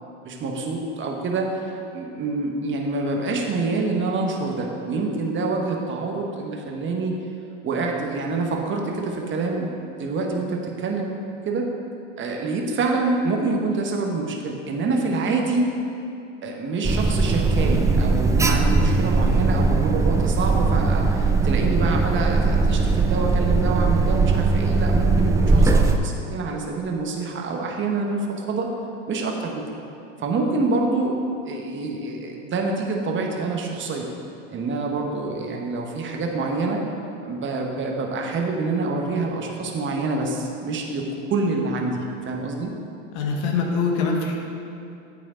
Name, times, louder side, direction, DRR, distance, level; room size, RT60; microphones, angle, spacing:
voice 1, 0.2-7.1 7.6-11.1 11.4-11.7 12.2-15.7 16.4-28.7 29.1-29.7 30.2-31.2 31.4-34.1 34.5-36.8 37.2-42.7, right 3 dB, 30° right, 1 dB, 1.3 m, -26 dB
Alarm, 16.8-26.0, right 3 dB, 10° right, 0.4 m, -19 dB
voice 2, 43.1-44.3, left 4 dB, 65° left, 0 dB, 1.6 m, -23 dB
9.0 x 8.3 x 3.8 m, 2.7 s
hypercardioid pair, 100°, 37 cm